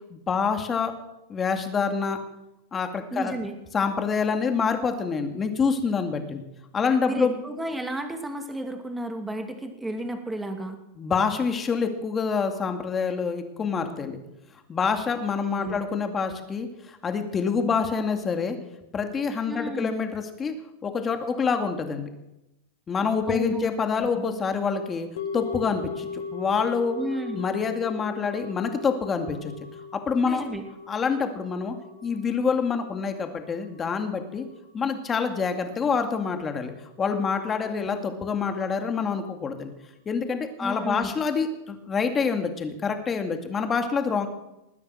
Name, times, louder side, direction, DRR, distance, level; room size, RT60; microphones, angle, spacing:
voice 1, 0.1-0.9 1.3-2.2 2.7-3.3 3.7-6.4 6.7-7.4 11.0-14.2 14.7-18.6 18.9-20.5 20.8-22.1 22.9-25.1 25.3-27.0 27.3-29.5 30.1-30.4 30.9-31.8 32.0-34.5 34.7-36.7 37.0-39.7 40.1-44.3, left 5 dB, 20° left, 6 dB, 2.3 m, -26 dB
voice 2, 3.1-3.5 7.1-10.8 15.6-15.8 19.5-19.9 23.3-23.7 24.0-24.2 27.0-27.4 30.2-30.6 37.6-37.7 40.6-41.1, right 1 dB, 5° right, 5 dB, 2.5 m, -32 dB
sound 1, 25.2-35.4 35.7-35.8, left 5 dB, 75° left, 1.6 m, -39 dB
20.5 x 9.7 x 6.3 m, 0.91 s
hypercardioid pair, 130°, 0 cm